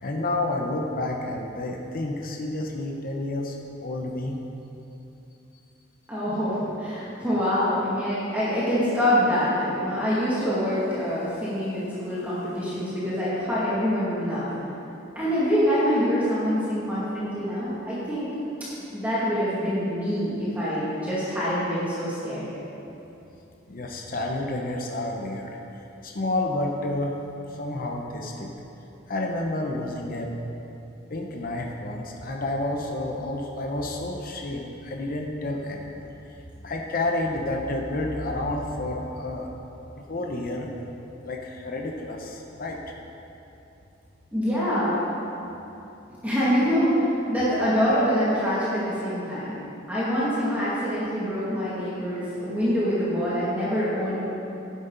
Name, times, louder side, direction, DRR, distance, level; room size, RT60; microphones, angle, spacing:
voice 1, 0.0-3.6 3.8-4.4 23.7-25.6 26.0-27.2 27.5-28.5 29.1-30.3 31.1-36.1 36.6-39.5 40.0-40.7 41.2-42.9, left 2 dB, 45° left, 1 dB, 0.9 m, -30 dB
voice 2, 6.1-14.5 15.2-18.3 18.9-22.5 44.3-45.0 46.2-49.6 49.9-54.2, equal, 10° right, -11 dB, 2.3 m, -25 dB
12.0 x 10.5 x 4.0 m, 2.9 s
head